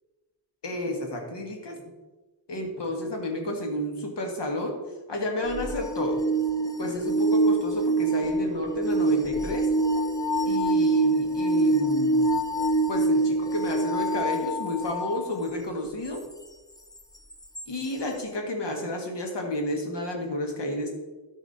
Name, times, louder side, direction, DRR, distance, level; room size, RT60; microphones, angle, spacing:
voice 1, 0.6-1.8 2.5-4.8 5.1-6.2 6.8-9.7 10.5-12.2 12.9-16.2 17.7-20.9, left 1 dB, 75° left, 2 dB, 1.9 m, -31 dB
sound 1, 5.5-15.2 17.6-17.7, right 2 dB, 10° left, 0.4 m, -25 dB
13.0 x 4.9 x 4.2 m, 1.2 s
wide cardioid pair, 115°, 42 cm